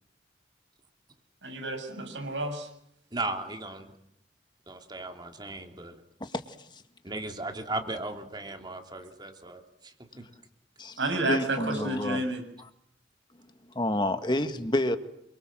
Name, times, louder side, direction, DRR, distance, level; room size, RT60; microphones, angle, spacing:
voice 1, 1.4-2.7 11.0-12.4, right 2 dB, 85° right, 5 dB, 7.3 m, -30 dB
voice 2, 3.1-3.9 4.7-6.0 7.0-10.3 11.0-11.1, right 2 dB, 25° right, 5 dB, 3.1 m, -37 dB
voice 3, 6.2-6.8 10.8-11.0 11.3-12.2 13.7-15.0, left 1 dB, 25° left, 8 dB, 1.8 m, -29 dB
27.5 x 24.0 x 7.6 m, 0.76 s
head